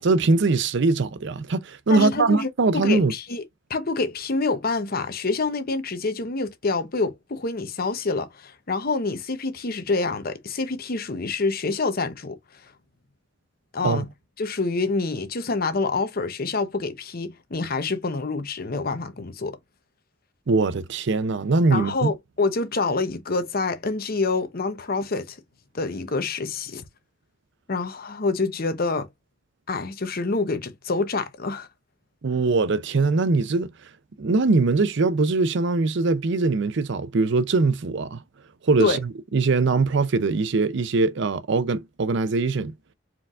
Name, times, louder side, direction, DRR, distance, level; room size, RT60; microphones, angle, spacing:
voice 1, 0.0-3.1 13.8-14.0 20.5-22.1 32.2-33.7 34.2-38.2 38.6-42.7, right 3 dB, 65° right, 0.5 m, -22 dB
voice 2, 1.9-3.4 3.7-12.4 12.6-12.7 13.7-14.1 14.4-19.6 21.7-25.4 25.7-26.8 27.7-29.1 29.7-31.7 38.8-39.0, left 3 dB, 50° left, 0.9 m, -27 dB
4.5 x 3.8 x 2.4 m
head